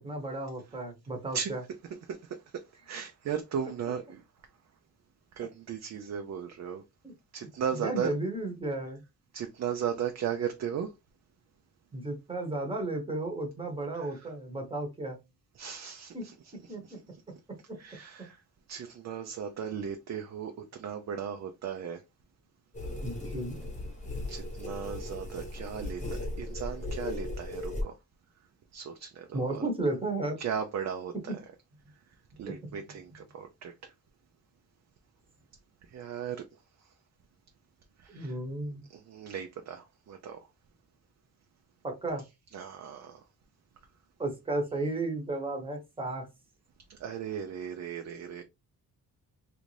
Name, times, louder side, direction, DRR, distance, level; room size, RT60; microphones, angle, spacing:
voice 1, 0.0-1.6 7.0-7.1 7.7-9.0 11.9-15.2 16.1-16.2 16.7-16.8 23.0-23.6 29.3-30.4 32.5-32.6 38.1-38.8 41.8-42.2 44.2-46.3, right 2 dB, 15° right, 0.9 m, -33 dB
voice 2, 2.1-4.2 5.4-6.8 7.3-8.1 9.3-10.9 13.9-14.3 15.6-16.3 16.8-17.0 17.8-18.4 18.7-22.0 24.3-26.0 26.4-27.9 28.7-29.6 30.4-31.3 32.4-33.9 35.9-36.5 38.0-38.4 38.9-40.5 42.5-43.2 46.9-48.4, right 8 dB, 45° right, 0.4 m, -36 dB
sound 1, 22.7-27.8, left 1 dB, 20° left, 0.9 m, -37 dB
3.2 x 2.6 x 3.1 m
wide cardioid pair, 170°, 38 cm